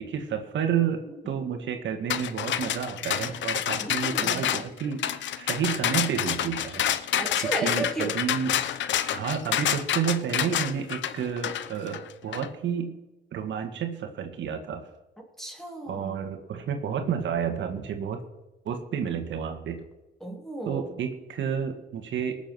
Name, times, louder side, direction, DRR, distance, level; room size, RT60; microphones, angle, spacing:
voice 1, 0.0-6.8 7.6-8.6 9.1-12.9 13.3-14.9 15.9-18.2 18.7-19.8 20.7-22.4, right 7 dB, 70° right, 5 dB, 1.8 m, -30 dB
sound 1, 2.1-12.5, left 10 dB, 70° left, 0.8 m, -28 dB
voice 2, 3.8-4.4 7.2-8.2 15.4-16.1 20.2-21.0, right 2 dB, ahead, 2 dB, 3.1 m, -34 dB
19.0 x 7.2 x 6.1 m, 1.0 s
cardioid pair, 90°, 20 cm